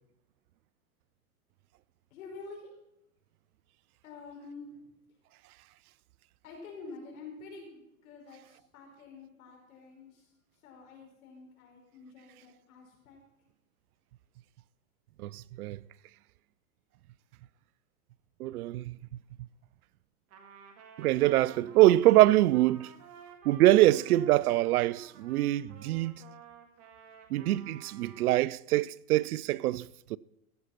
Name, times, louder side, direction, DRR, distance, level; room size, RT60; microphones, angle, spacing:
voice 1, 2.1-2.7 4.0-4.8 6.4-10.3 10.6-13.2, left 4 dB, 70° left, 5.1 m, -48 dB
voice 2, 15.2-15.8 18.4-19.0 21.0-22.9 23.4-26.2 27.3-30.2, right 16 dB, 80° right, 0.5 m, -24 dB
Trumpet, 20.3-28.4, right 6 dB, 35° right, 2.1 m, -53 dB
14.5 x 7.9 x 5.8 m
hypercardioid pair, 135°, 43 cm